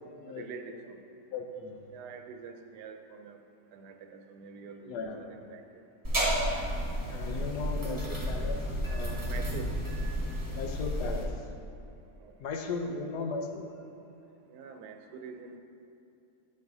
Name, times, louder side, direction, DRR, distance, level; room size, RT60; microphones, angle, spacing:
voice 1, 0.3-1.0 1.9-3.4 3.7-5.6 9.3-9.7 12.2-12.3 14.5-15.6, right 6 dB, 90° right, 5 dB, 1.2 m, -45 dB
voice 2, 1.3-1.9 4.9-5.4 7.1-8.6 8.9-9.2 10.5-11.3 12.4-13.7, left 4 dB, 85° left, 3 dB, 1.3 m, -36 dB
sound 1, 6.0-11.2, equal, 15° right, 1.1 m, -31 dB
9.3 x 7.4 x 2.7 m, 2.8 s
omnidirectional pair, 1.7 m